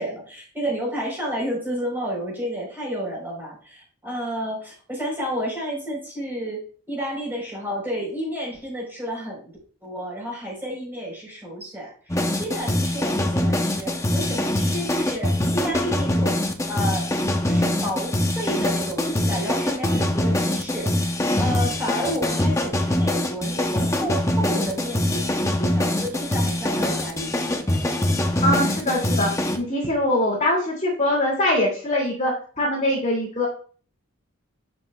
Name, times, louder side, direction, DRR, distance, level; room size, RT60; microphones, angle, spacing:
voice 1, 0.0-6.6 6.9-9.5 9.8-16.4 16.7-17.1 17.5-27.7, equal, 10° right, -3 dB, 3.9 m, -31 dB
sound 1, 12.1-29.6, left 1 dB, 15° left, 0.7 m, -23 dB
voice 2, 28.4-33.5, left 1 dB, 30° left, -3 dB, 2.4 m, -23 dB
11.0 x 6.3 x 2.3 m, 0.43 s
head